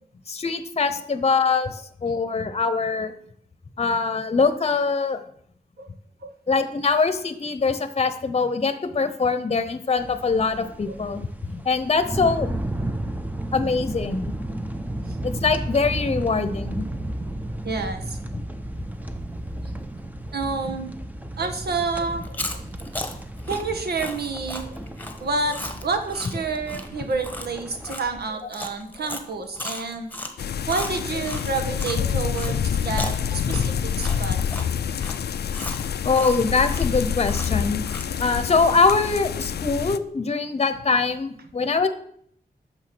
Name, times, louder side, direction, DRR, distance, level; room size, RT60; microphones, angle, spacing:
voice 1, 0.3-3.1 3.8-5.2 6.5-12.5 13.5-14.3 15.2-16.8 18.3-18.4 18.8-18.9 36.0-37.8 38.2-41.9, left 4 dB, 40° left, 11 dB, 0.9 m, -23 dB
sound 1, 10.0-27.9, right 1 dB, 10° right, 0.8 m, -33 dB
voice 2, 17.6-18.2 20.3-20.9 21.4-22.6 23.5-24.8 25.2-30.1 30.7-34.4, right 4 dB, 75° right, 6 dB, 1.5 m, -29 dB
Chewing mastication, 22.2-32.0 32.3-38.3, left 1 dB, 10° left, 1.3 m, -36 dB
sound 2, 30.4-40.0, left 8 dB, 85° left, 0.5 m, -27 dB
9.6 x 6.7 x 6.2 m, 0.65 s
wide cardioid pair, 110°, 16 cm